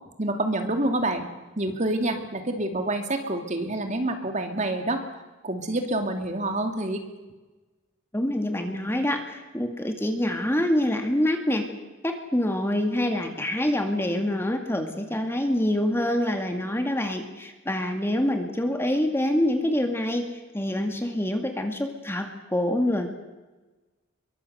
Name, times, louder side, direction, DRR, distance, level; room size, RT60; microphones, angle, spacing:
voice 1, 0.2-1.3 1.6-5.0 5.4-7.0, right 1 dB, 35° right, 5 dB, 2.5 m, -27 dB
voice 2, 8.1-11.6 12.0-23.1, left 1 dB, 10° left, 4 dB, 2.1 m, -26 dB
24.5 x 23.0 x 8.0 m, 1.2 s
head